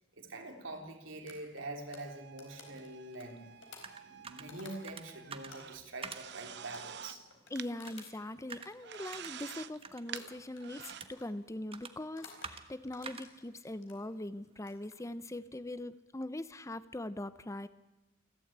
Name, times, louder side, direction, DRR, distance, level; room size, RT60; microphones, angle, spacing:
voice 1, 0.2-3.4 4.0-7.2, right 2 dB, 85° right, 3 dB, 3.7 m, -45 dB
sound 1, 1.3-5.1 5.5-9.8 10.1-10.7 11.0-11.3 12.0-12.5 12.9-14.0 14.5-15.0, left 4 dB, 75° left, 4.5 m, -55 dB
sound 2, 1.9-7.2 7.6-7.7 8.7-10.2 10.6-11.0, right 9 dB, 60° right, 0.8 m, -49 dB
sound 3, 3.2-14.9, right 5 dB, 30° right, 1.3 m, -51 dB
voice 2, 7.5-17.7, left 1 dB, 15° left, 14 dB, 0.7 m, -41 dB
28.5 x 12.5 x 8.8 m, 1.0 s
head